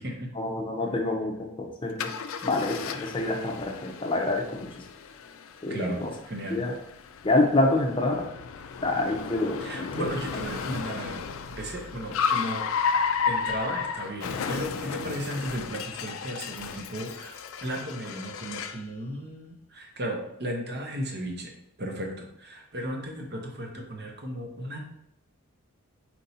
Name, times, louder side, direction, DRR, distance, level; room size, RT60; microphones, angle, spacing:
voice 1, 0.3-2.1 2.4-4.8 5.6-6.1 6.5-6.7 7.2-8.3 8.8-10.1, left 2 dB, 25° left, 1 dB, 0.6 m, -27 dB
Car, 2.0-18.9, left 6 dB, 70° left, 0.3 m, -33 dB
voice 2, 6.3-6.6 9.6-11.3 11.6-12.7 13.3-21.5 21.8-22.1 22.4-24.8, equal, 50° right, 1 dB, 0.8 m, -35 dB
4.5 x 2.7 x 4.0 m, 0.76 s
head